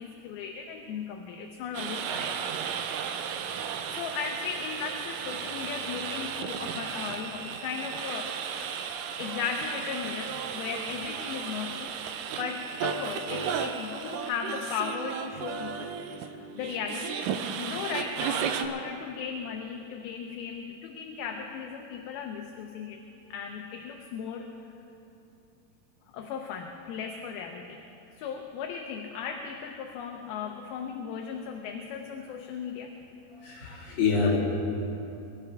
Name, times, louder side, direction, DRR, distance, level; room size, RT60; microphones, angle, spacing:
voice 1, 0.0-2.3 3.5-8.8 9.2-12.0 12.4-17.2 17.6-23.0 23.3-24.5 26.1-27.8 28.2-33.0, left 6 dB, 80° left, 2 dB, 2.6 m, -36 dB
sound 1, 1.7-18.7, right 7 dB, 80° right, 2.0 m, -34 dB
voice 2, 33.4-34.4, left 5 dB, 45° left, -7 dB, 4.3 m, -26 dB
24.0 x 13.5 x 3.5 m, 2.8 s
omnidirectional pair, 4.6 m